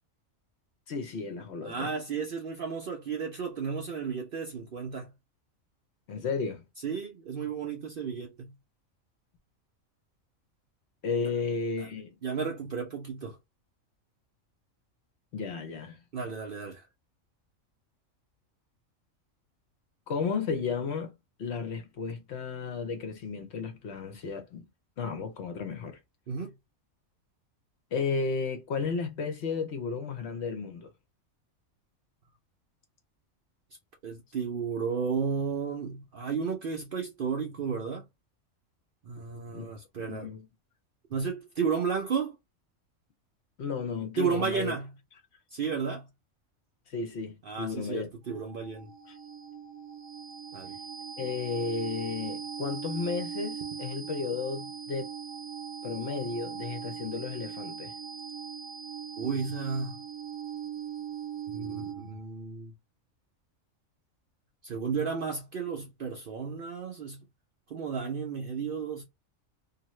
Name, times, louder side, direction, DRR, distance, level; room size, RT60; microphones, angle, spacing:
voice 1, 0.9-1.9 6.1-6.6 11.0-12.1 15.3-16.0 20.1-21.1 21.4-24.7 25.0-26.0 27.9-30.9 39.5-39.7 40.1-40.5 43.6-44.7 46.9-48.1 49.1-49.2 51.2-55.1 55.8-57.9, left 5 dB, 60° left, 0.8 m, -33 dB
voice 2, 1.6-5.1 6.8-8.5 11.2-11.3 11.8-12.0 12.2-13.4 16.1-16.9 26.3-26.5 34.0-38.0 39.1-40.3 41.1-42.4 44.2-44.9 45.5-46.1 47.4-48.9 50.5-50.8 59.2-60.0 61.5-62.7 64.6-67.2 67.7-69.0, right 6 dB, 55° right, 0.6 m, -33 dB
sound 1, 48.3-62.2, right 8 dB, 70° right, 1.0 m, -40 dB
2.7 x 2.4 x 3.1 m
omnidirectional pair, 1.4 m